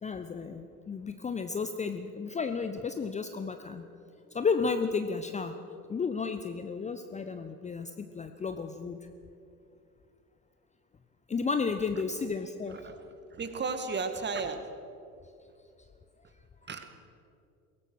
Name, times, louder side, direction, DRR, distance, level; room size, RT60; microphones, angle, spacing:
voice 1, 0.0-3.8 4.3-5.5 5.9-9.0 11.3-12.8, left 5 dB, 15° left, 8 dB, 0.9 m, -32 dB
voice 2, 12.7-14.6 16.7-16.9, right 4 dB, 25° right, 8 dB, 2.0 m, -34 dB
22.5 x 18.5 x 6.4 m, 2.6 s
figure-of-eight pair, 65°, 43 cm